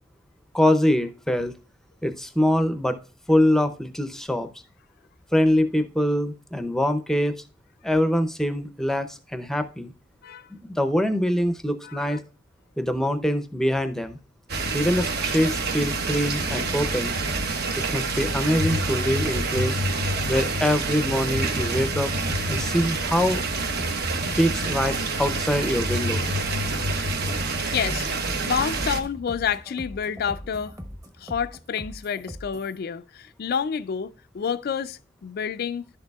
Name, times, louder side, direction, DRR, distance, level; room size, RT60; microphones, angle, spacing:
voice 1, 0.5-1.5 2.0-3.0 3.3-4.5 5.3-7.4 7.8-9.9 10.7-12.2 12.8-14.2 14.7-17.1 17.9-19.8 20.3-22.1 22.5-23.4 24.4-26.3, equal, ahead, 0.6 m, -24 dB
voice 2, 11.8-12.2 27.6-28.1 28.4-30.8 31.2-35.9, left 7 dB, 50° left, 0.4 m, -29 dB
sound 1, 14.5-29.0, right 2 dB, 55° right, 0.9 m, -27 dB
sound 2, 16.8-32.8, equal, 20° right, 1.0 m, -40 dB
11.0 x 6.5 x 2.3 m
head